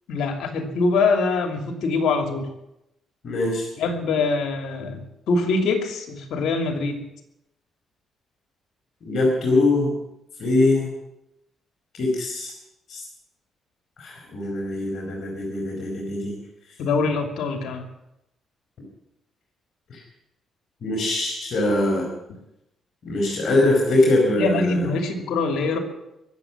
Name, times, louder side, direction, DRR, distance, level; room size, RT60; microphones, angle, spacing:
voice 1, 0.1-2.5 3.8-5.0 5.3-7.0 16.8-17.9 24.4-25.8, left 3 dB, 80° left, 4 dB, 2.8 m, -23 dB
voice 2, 3.2-3.7 9.0-10.0 10.4-10.9 11.9-12.5 12.9-13.0 14.0-16.3 19.9-20.0 20.8-22.1 23.0-24.9, left 2 dB, 60° left, -1 dB, 4.9 m, -22 dB
23.0 x 7.9 x 7.3 m, 0.86 s
cardioid pair, 90°, 0 cm